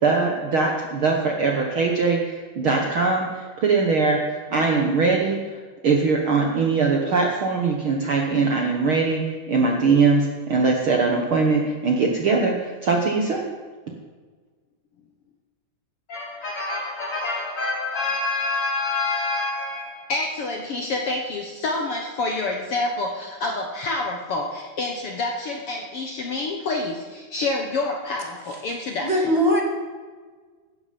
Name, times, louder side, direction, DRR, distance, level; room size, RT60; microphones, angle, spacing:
voice 1, 0.0-5.6 5.8-13.5, right 4 dB, 55° right, 1 dB, 1.6 m, -21 dB
voice 2, 16.1-29.1, left 2 dB, 60° left, 2 dB, 1.7 m, -27 dB
voice 3, 29.0-29.6, equal, 20° right, 0 dB, 2.2 m, -20 dB
16.0 x 13.5 x 5.2 m, 1.5 s
omnidirectional pair, 3.7 m